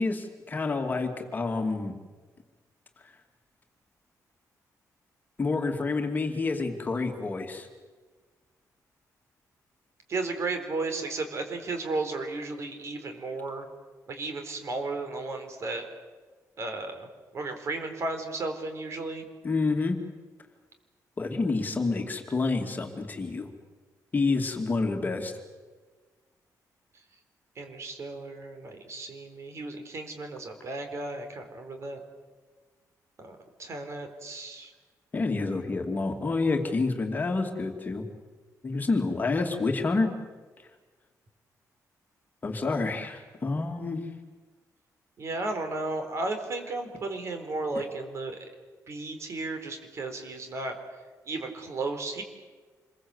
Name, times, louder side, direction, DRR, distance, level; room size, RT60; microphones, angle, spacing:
voice 1, 0.0-2.0 3.0-3.1 5.4-7.7 19.4-20.0 21.2-23.5 24.1-25.3 35.1-38.0 38.6-40.1 42.4-44.1, left 3 dB, 30° left, 4 dB, 2.6 m, -28 dB
voice 2, 10.1-13.7 14.1-15.8 16.6-17.1 17.3-19.3 27.6-32.0 33.2-34.7 45.2-48.5 48.9-50.8 51.3-52.2, right 3 dB, 45° right, 6 dB, 4.2 m, -34 dB
27.5 x 22.0 x 8.1 m, 1.4 s
cardioid pair, 140°, 6 cm